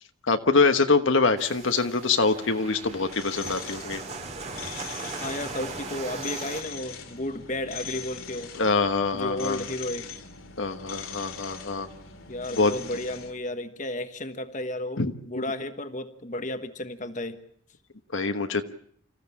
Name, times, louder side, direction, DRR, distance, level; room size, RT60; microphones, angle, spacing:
voice 1, 0.3-4.0 8.5-9.6 10.6-11.9 12.5-12.7 15.0-15.5 18.1-18.6, left 4 dB, 65° left, 8 dB, 1.2 m, -24 dB
sound 1, 1.4-6.6, right 3 dB, 30° right, 2.1 m, -38 dB
sound 2, 2.8-13.3, left 6 dB, 85° left, 2.6 m, -41 dB
voice 2, 5.2-8.6 9.1-10.1 12.3-17.4, left 1 dB, 35° left, 9 dB, 1.3 m, -33 dB
26.5 x 15.0 x 8.6 m, 0.63 s
head